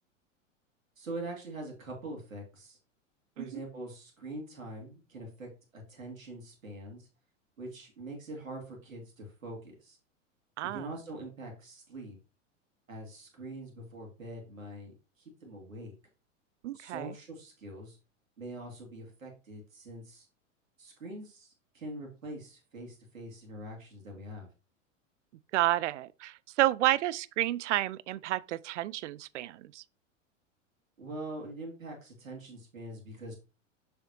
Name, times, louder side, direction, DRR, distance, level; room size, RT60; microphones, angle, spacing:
voice 1, 1.0-2.8 3.4-7.1 7.6-10.0 10.6-12.2 12.9-15.9 16.7-18.0 18.4-20.3 20.8-24.5 31.0-33.3, right 1 dB, 85° right, 2.3 m, -43 dB
voice 2, 10.6-10.9 16.6-17.1 25.5-29.8, right 15 dB, 65° right, 0.6 m, -30 dB
6.9 x 6.6 x 2.7 m
hypercardioid pair, 95°, 39 cm